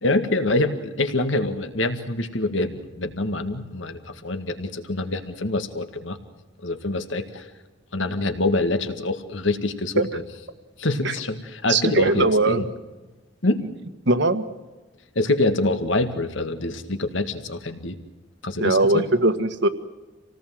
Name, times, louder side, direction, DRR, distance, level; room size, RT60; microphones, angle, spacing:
voice 1, 0.0-6.2 6.6-7.5 7.9-10.2 10.8-12.7 13.4-13.6 15.2-18.0 18.4-19.0, left 2 dB, 80° left, 8 dB, 2.1 m, -25 dB
voice 2, 11.7-12.6 14.0-14.4 18.6-19.7, right 2 dB, 65° right, 9 dB, 1.7 m, -20 dB
27.5 x 18.5 x 7.8 m, 1.2 s
head